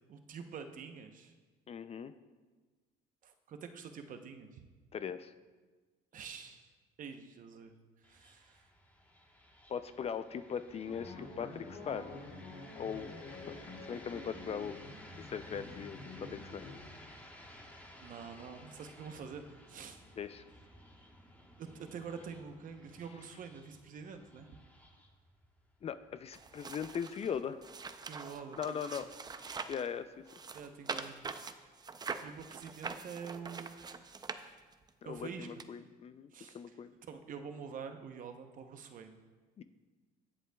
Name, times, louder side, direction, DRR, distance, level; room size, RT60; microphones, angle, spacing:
voice 1, 0.1-1.3 3.2-4.7 6.1-6.7 7.0-7.7 8.0-8.7 18.0-20.0 21.6-24.6 28.0-28.8 30.5-31.2 32.2-33.8 35.0-35.5 36.3-36.8 37.1-39.2, right 6 dB, 50° right, 7 dB, 0.8 m, -46 dB
voice 2, 1.7-2.1 4.9-5.3 9.7-12.2 12.8-13.1 13.5-13.6 13.9-14.8 15.2-16.6 20.2-20.4 25.8-27.6 28.6-29.1 29.7-30.1 35.0-36.9 39.6-39.7, left 7 dB, 35° left, 12 dB, 0.4 m, -40 dB
sound 1, 8.0-27.0, left 1 dB, 10° left, 1.2 m, -56 dB
sound 2, 10.9-16.8, left 3 dB, 70° left, 3.1 m, -48 dB
sound 3, 26.3-29.9 30.3-34.9 35.6-35.7, right 5 dB, 25° right, 0.5 m, -44 dB
18.0 x 7.7 x 2.3 m, 1.3 s
cardioid pair, 110°, 17 cm